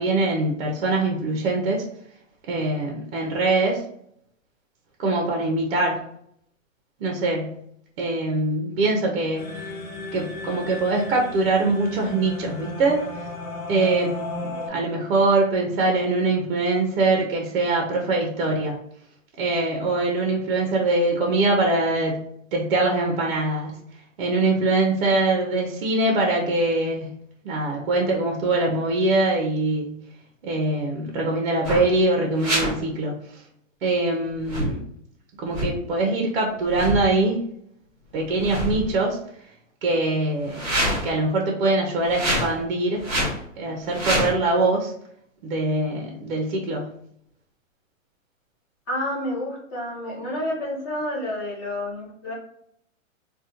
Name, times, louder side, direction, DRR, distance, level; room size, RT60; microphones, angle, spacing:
voice 1, 0.0-1.8 2.5-3.8 5.0-6.0 7.0-7.6 8.0-9.7 10.1-13.2 13.7-14.2 14.4-18.8 19.4-22.2 22.5-23.7 24.2-27.1 27.4-30.0 30.4-33.4 33.8-34.8 35.4-37.4 38.1-39.2 39.8-40.6 41.0-43.1 43.6-44.9 45.4-46.9, right 2 dB, 45° right, 0 dB, 0.5 m, -23 dB
sound 1, 9.4-14.7, left 2 dB, 85° left, 1.0 m, -34 dB
sound 2, 31.6-31.9 32.4-32.7 34.4-34.8 35.5-35.7 36.7-37.1 38.2-39.0 40.4-41.1 42.0-42.5 43.0-43.4 43.9-44.3, equal, 20° right, 1.0 m, -26 dB
voice 2, 48.9-52.3, left 1 dB, 15° left, -6 dB, 0.5 m, -29 dB
2.5 x 2.1 x 2.7 m, 0.70 s
hypercardioid pair, 160°, 40 cm